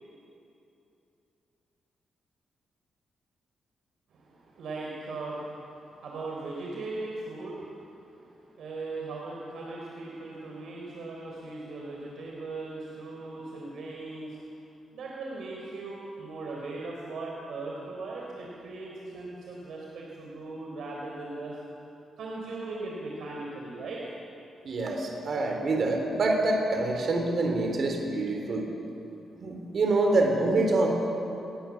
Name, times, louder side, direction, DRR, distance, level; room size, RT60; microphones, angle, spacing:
voice 1, 4.1-14.5 14.9-21.6 22.2-24.1, right 2 dB, 65° right, -2 dB, 4.0 m, -39 dB
voice 2, 24.6-28.7 29.4-30.9, right 2 dB, 45° right, 2 dB, 3.9 m, -26 dB
27.0 x 21.5 x 7.4 m, 2.9 s
wide cardioid pair, 160°, 0 cm